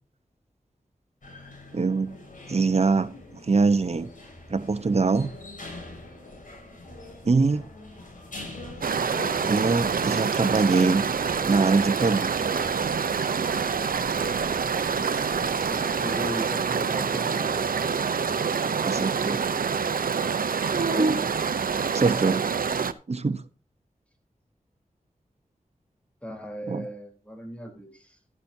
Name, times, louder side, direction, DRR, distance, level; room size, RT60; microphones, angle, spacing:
sound 1, 1.2-16.3, left 2 dB, 65° left, 7.1 m, -43 dB
voice 1, 1.7-2.2 2.5-3.2 3.4-4.1 4.5-5.3 7.2-7.7 9.4-11.0 11.4-12.3 18.8-19.4 20.7-21.2 21.9-22.5 23.1-23.4 26.7-26.9, right 4 dB, 50° right, 1.0 m, -23 dB
sound 2, 8.8-22.9, right 6 dB, 85° right, 0.8 m, -26 dB
voice 2, 15.5-17.7 20.7-21.2 26.2-28.2, equal, 10° left, 3.8 m, -37 dB
13.5 x 11.0 x 2.8 m
wide cardioid pair, 80°, 14 cm